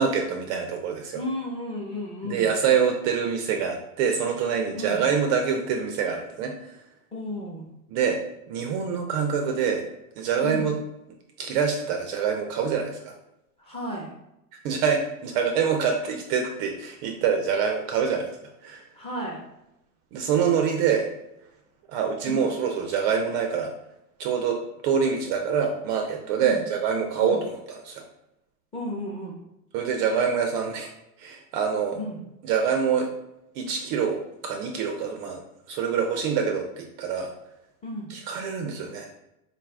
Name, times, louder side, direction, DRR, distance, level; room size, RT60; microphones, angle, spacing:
voice 1, 0.0-1.2 2.2-6.8 7.9-8.2 8.5-9.8 10.2-10.8 11.4-13.1 14.5-18.3 18.6-18.9 20.1-21.1 21.9-23.7 24.2-27.5 27.8-28.0 29.7-30.9 31.2-32.0 32.4-33.1 33.6-35.4 35.7-37.3 38.1-39.1, right 6 dB, 40° right, 3 dB, 0.4 m, -25 dB
voice 2, 1.1-2.5 4.7-5.0 7.1-7.7 10.4-10.7 13.6-14.1 18.9-19.4 22.3-22.5 26.4-26.6 27.2-27.4 28.7-29.4 31.9-32.2 37.8-38.1, equal, 15° left, -2 dB, 0.6 m, -33 dB
3.9 x 2.5 x 3.3 m, 0.87 s
supercardioid pair, 125°, 45 cm